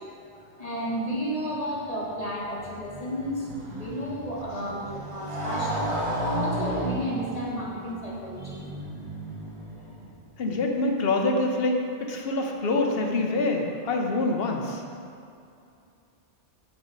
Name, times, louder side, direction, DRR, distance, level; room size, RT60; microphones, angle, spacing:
voice 1, 0.4-6.0 6.3-8.9, equal, 35° left, -5 dB, 1.1 m, -32 dB
Motorcycle, 2.1-10.2, right 1 dB, 30° right, 1.0 m, -34 dB
voice 2, 10.4-14.8, left 2 dB, 60° left, 2 dB, 1.0 m, -26 dB
7.5 x 5.7 x 4.0 m, 2.6 s
omnidirectional pair, 1.2 m